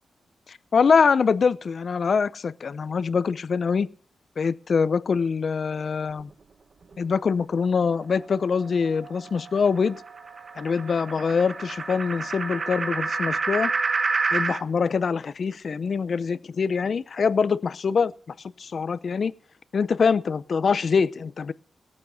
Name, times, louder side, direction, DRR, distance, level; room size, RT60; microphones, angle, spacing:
voice 1, 0.5-3.9 4.4-6.3 7.0-10.0 10.6-13.7 14.3-18.1 18.6-19.3 19.7-21.5, left 5 dB, 50° left, 0.7 m, -24 dB
sound 1, 7.9-14.6, right 4 dB, 40° right, 1.1 m, -29 dB
19.0 x 8.6 x 5.6 m
wide cardioid pair, 130°, 0 cm